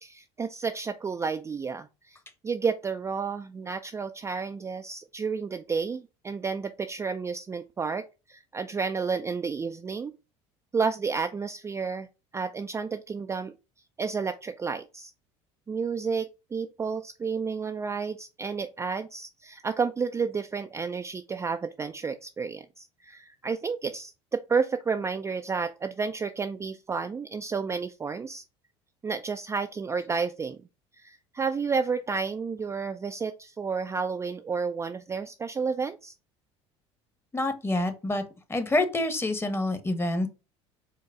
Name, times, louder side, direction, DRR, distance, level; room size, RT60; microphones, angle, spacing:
voice 1, 0.0-2.2 2.4-10.1 10.7-12.1 12.3-13.5 14.0-15.1 15.7-28.4 29.0-30.6 31.0-36.1, right 5 dB, 20° right, 7 dB, 0.3 m, -31 dB
voice 2, 37.3-38.2 38.5-40.3, left 2 dB, 15° left, 9 dB, 1.0 m, -27 dB
4.6 x 2.1 x 4.7 m, 0.29 s
supercardioid pair, 85°, 14 cm